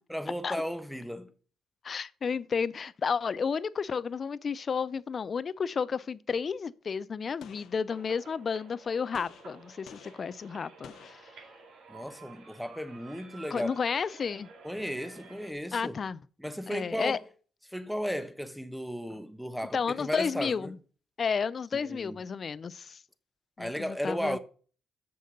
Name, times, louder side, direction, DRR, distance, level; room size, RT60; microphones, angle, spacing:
voice 1, 0.1-1.3 11.9-13.8 14.6-16.0 16.4-17.2 17.7-20.7 21.7-22.2 23.6-24.4, equal, ahead, 0.9 m, -35 dB
voice 2, 1.8-11.2 13.5-14.5 15.7-16.2 16.7-17.2 19.7-20.8 21.2-23.0 23.6-24.4, left 6 dB, 45° left, 0.5 m, -32 dB
Gunshot gunfire, 7.4-8.5 9.1-11.9, left 8 dB, 75° left, 0.8 m, -54 dB
sound 1, 7.9-15.5, right 4 dB, 70° right, 2.2 m, -52 dB
6.9 x 6.5 x 6.7 m
cardioid pair, 90°, 0 cm